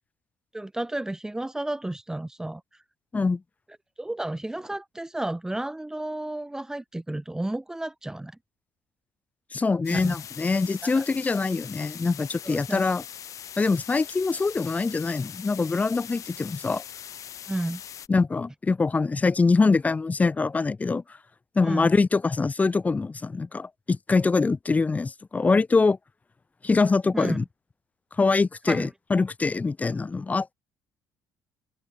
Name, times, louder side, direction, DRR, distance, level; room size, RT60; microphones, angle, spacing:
voice 1, 0.5-2.8 4.0-8.4 9.9-10.2 10.8-11.0 12.4-12.8 17.5-17.8 21.6-21.9 27.1-27.4 28.7-28.9, right 1 dB, 10° right, 1.5 m, -32 dB
voice 2, 9.5-13.0 13.6-16.8 18.1-21.0 21.6-26.0 26.6-27.4 28.2-30.5, left 4 dB, 20° left, 2.3 m, -24 dB
sound 1, 9.8-18.1, left 9 dB, 50° left, 3.0 m, -41 dB
cardioid pair, 110°, 7 cm